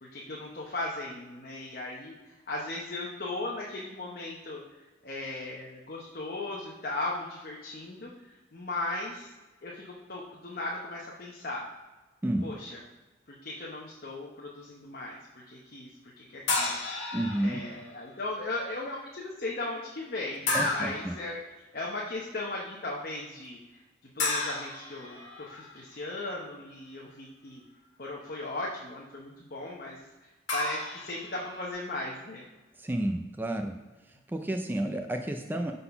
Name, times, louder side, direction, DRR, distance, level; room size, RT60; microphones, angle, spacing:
voice 1, 0.0-4.6 5.0-9.3 9.6-11.7 12.4-12.8 13.3-15.9 16.2-21.4 21.7-23.8 24.1-27.6 28.0-32.5, left 2 dB, 50° left, -3 dB, 0.8 m, -37 dB
sound 1, 16.5-17.8 20.5-21.2 24.2-25.8 30.5-31.7, left 3 dB, 75° left, 1.5 m, -32 dB
voice 2, 17.1-17.6 20.5-21.1 32.8-33.7 34.3-35.7, right 1 dB, 10° right, 4 dB, 0.3 m, -30 dB
5.8 x 3.9 x 5.7 m, 1.1 s
head